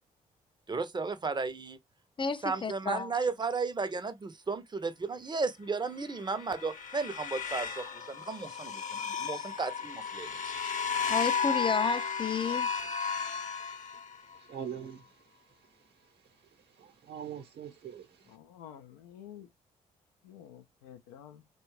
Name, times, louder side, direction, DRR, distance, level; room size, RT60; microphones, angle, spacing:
voice 1, 0.7-1.8 2.4-10.5, right 4 dB, 25° right, 0.6 m, -34 dB
voice 2, 2.2-3.1 11.1-12.7, left 5 dB, 30° left, 0.4 m, -31 dB
sound 1, 6.1-14.4, left 6 dB, 45° left, 0.7 m, -34 dB
voice 3, 14.3-15.2 16.8-18.3, right 8 dB, 65° right, 0.9 m, -43 dB
voice 4, 18.3-19.5 20.2-21.5, left 10 dB, 90° left, 0.4 m, -50 dB
2.7 x 2.3 x 3.0 m
hypercardioid pair, 45°, 18 cm